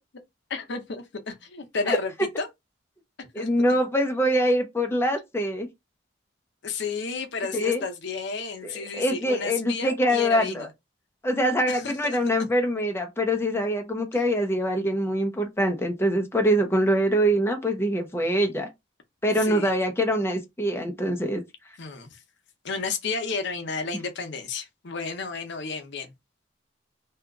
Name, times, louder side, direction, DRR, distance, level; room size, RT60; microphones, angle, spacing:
voice 1, 0.5-2.1 2.4-2.5 3.2-3.5 6.6-10.7 11.7-12.2 19.3-19.7 21.8-22.2 22.6-26.1, left 4 dB, 65° left, 0.7 m, -32 dB
voice 2, 3.3-5.7 7.5-7.8 8.6-10.7 11.2-18.7 19.2-21.4, equal, 15° left, 0.6 m, -24 dB
2.8 x 2.4 x 3.6 m
head